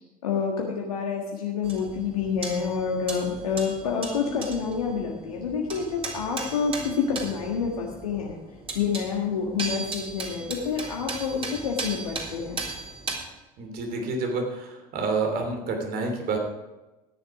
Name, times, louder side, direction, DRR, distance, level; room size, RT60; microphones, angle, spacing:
voice 1, 0.2-8.4 8.7-12.7, left 6 dB, 85° left, -1 dB, 1.7 m, -28 dB
Hammering metall, 1.6-13.2, right 3 dB, 30° right, 3.9 m, -37 dB
voice 2, 13.6-16.4, right 3 dB, 55° right, 3 dB, 3.2 m, -28 dB
14.0 x 9.9 x 4.9 m, 1.1 s
hypercardioid pair, 70°, 19 cm